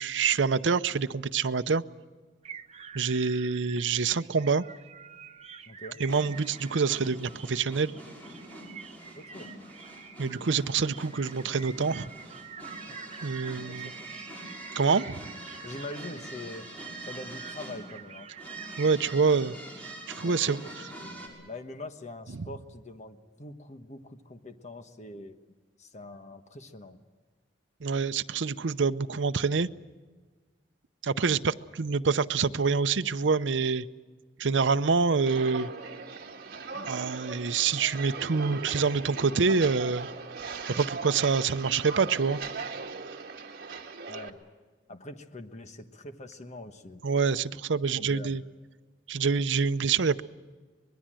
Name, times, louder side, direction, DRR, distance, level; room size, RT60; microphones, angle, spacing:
voice 1, 0.0-1.8 2.9-4.7 6.0-7.9 10.2-12.1 13.2-13.9 14.8-15.2 18.8-19.5 20.1-20.6 27.8-29.7 31.0-33.8 34.4-35.7 36.9-40.1 40.6-42.4 47.0-48.4 49.1-50.2, right 5 dB, 80° right, 11 dB, 0.6 m, -26 dB
sound 1, 2.4-18.9, right 6 dB, 35° right, 1.0 m, -47 dB
voice 2, 5.7-6.0 9.1-9.5 12.9-13.0 13.5-13.9 15.6-16.7 17.0-18.3 20.2-20.7 21.0-25.4 25.8-27.0 36.8-36.9 44.1-44.4 44.9-47.0 47.9-48.4, left 2 dB, 40° left, 8 dB, 1.3 m, -43 dB
sound 2, 6.1-21.3, right 1 dB, 10° left, 5.9 m, -45 dB
Walk footsteps, 35.2-44.3, right 4 dB, 55° right, 1.9 m, -39 dB
24.5 x 21.0 x 7.6 m, 1.4 s
head